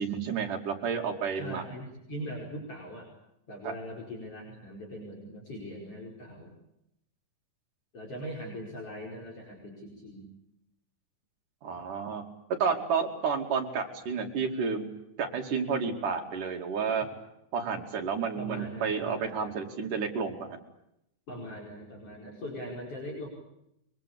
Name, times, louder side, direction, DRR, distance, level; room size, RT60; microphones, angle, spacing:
voice 1, 0.0-1.6 3.6-3.7 11.6-12.2 12.6-14.9 15.2-17.1 17.5-20.6, right 6 dB, 75° right, 3 dB, 4.2 m, -31 dB
voice 2, 1.4-3.1 3.5-6.6 7.9-10.3 18.4-19.5 21.3-23.3, equal, 45° left, -2 dB, 6.0 m, -41 dB
24.5 x 23.5 x 8.6 m, 0.81 s
omnidirectional pair, 3.7 m